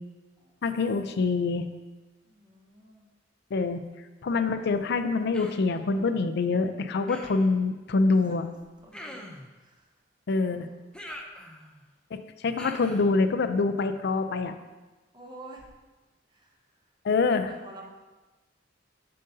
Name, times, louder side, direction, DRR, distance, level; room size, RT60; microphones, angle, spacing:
voice 1, 0.6-1.7 3.5-3.8 4.2-8.5 10.3-10.7 12.1-14.5 17.0-17.5, left 3 dB, 60° left, 9 dB, 0.4 m, -25 dB
voice 2, 2.2-3.1 8.1-8.5 8.8-9.3 9.6-9.9 10.4-10.7 15.1-15.7 16.3-16.5 17.1-17.9, right 1 dB, 25° right, 0 dB, 0.8 m, -49 dB
Human voice, 5.3-5.7 7.1-7.5 8.9-9.5 10.9-11.8 12.6-13.1, equal, 5° left, 0.6 m, -43 dB
7.4 x 6.6 x 2.7 m, 1.2 s
head